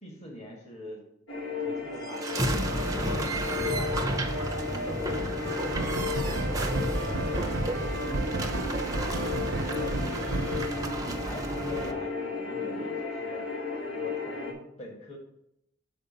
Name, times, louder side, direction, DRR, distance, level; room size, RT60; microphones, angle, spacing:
voice 1, 0.0-1.0 1.6-3.2 3.6-4.1 4.7-5.4 6.0-6.3 9.7-10.3 10.9-13.5 13.9-15.2, equal, 35° left, -1 dB, 1.5 m, -43 dB
sound 1, 1.3-14.5, left 3 dB, 80° left, 1.6 m, -34 dB
sound 2, 2.0-11.9, right 1 dB, 20° right, 0.7 m, -32 dB
voice 2, 4.7-5.4 12.6-12.9, right 1 dB, 50° left, 0 dB, 1.7 m, -50 dB
sound 3, 5.4-10.7, right 2 dB, 70° right, 0.7 m, -33 dB
6.8 x 4.7 x 5.4 m, 0.81 s
head